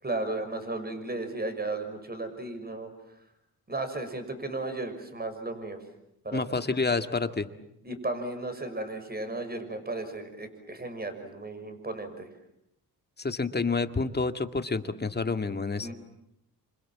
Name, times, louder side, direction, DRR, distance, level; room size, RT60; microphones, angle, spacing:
voice 1, 0.0-2.9 3.7-5.8 6.2-6.6 7.8-12.3 15.8-15.9, right 2 dB, 25° right, 8 dB, 6.1 m, -35 dB
voice 2, 6.3-7.5 13.2-15.9, left 4 dB, 25° left, 8 dB, 2.1 m, -29 dB
29.0 x 26.5 x 7.6 m, 0.80 s
cardioid pair, 80°, 37 cm